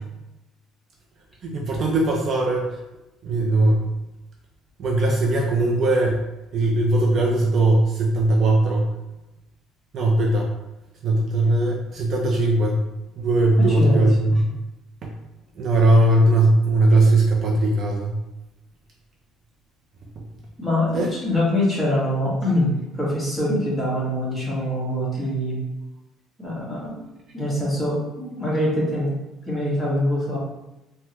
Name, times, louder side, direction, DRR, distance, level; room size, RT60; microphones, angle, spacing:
voice 1, 1.4-2.7 3.2-3.8 4.8-6.2 6.5-8.9 9.9-10.5 11.0-12.8 13.2-14.5 15.0-15.1 15.6-18.2 20.9-21.1, right 2 dB, 45° right, -1 dB, 0.5 m, -19 dB
voice 2, 13.6-14.0 20.6-25.6 26.4-27.1 27.3-29.1 29.4-30.4, left 1 dB, 5° left, -8 dB, 1.3 m, -24 dB
3.4 x 2.2 x 2.9 m, 0.97 s
cardioid pair, 125°, 0 cm